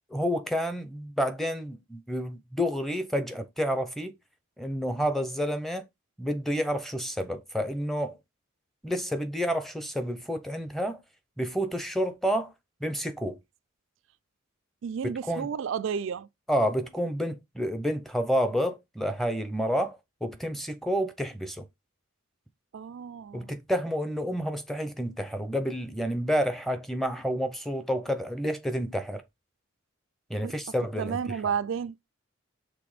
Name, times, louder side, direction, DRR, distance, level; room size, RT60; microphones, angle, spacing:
voice 1, 0.1-4.1 4.6-5.9 6.2-8.2 8.8-11.0 11.4-12.5 12.8-13.4 15.0-15.5 16.5-21.6 23.3-29.2 30.3-31.5, equal, ahead, 0.7 m, -29 dB
voice 2, 14.8-16.3 22.7-23.5 30.4-30.5 31.0-31.9, right 7 dB, 65° right, 0.3 m, -32 dB
6.0 x 3.4 x 4.9 m
head